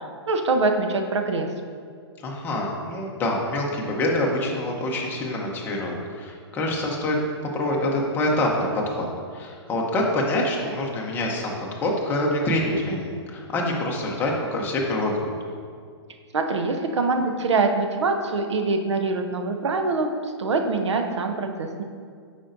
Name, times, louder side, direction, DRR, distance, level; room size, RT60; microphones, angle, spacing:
voice 1, 0.0-1.5 16.3-21.8, right 3 dB, 85° right, 5 dB, 0.8 m, -24 dB
voice 2, 2.2-7.2 7.5-9.1 9.3-15.3, left 1 dB, 15° left, -2 dB, 0.8 m, -26 dB
8.4 x 5.1 x 2.7 m, 2.1 s
hypercardioid pair, 155°, 14 cm